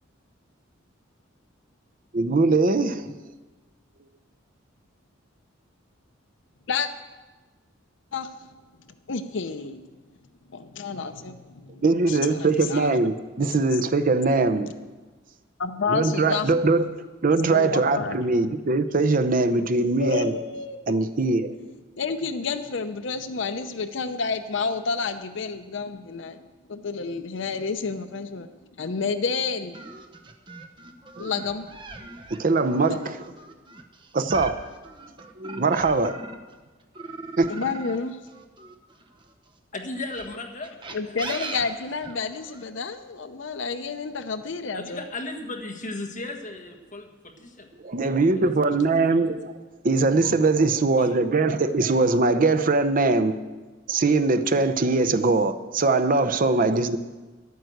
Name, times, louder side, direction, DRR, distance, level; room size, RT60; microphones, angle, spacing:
voice 1, 2.1-3.1 11.8-14.7 15.9-20.4 20.9-21.5 31.2-31.3 32.3-33.0 34.1-34.6 35.4-36.1 37.4-37.5 47.8-49.5 49.8-53.3 53.9-57.0, right 3 dB, 45° right, 10 dB, 0.6 m, -21 dB
voice 2, 9.1-9.8 10.5-12.9 13.7-13.8 15.6-16.5 17.5-18.3 20.0-21.0 22.0-26.4 26.7-28.5 28.8-29.8 31.2-31.7 32.9-33.0 37.5-38.2 40.9-45.0, left 5 dB, 65° left, 10 dB, 0.6 m, -30 dB
sound 1, 29.7-36.5 36.9-39.3 40.0-42.6, right 3 dB, 25° right, 1.0 m, -39 dB
voice 3, 39.7-40.7 41.0-41.5 44.7-47.7 48.3-49.4 51.0-51.2, left 2 dB, 40° left, 2 dB, 1.6 m, -37 dB
11.5 x 9.4 x 7.9 m, 1.3 s
head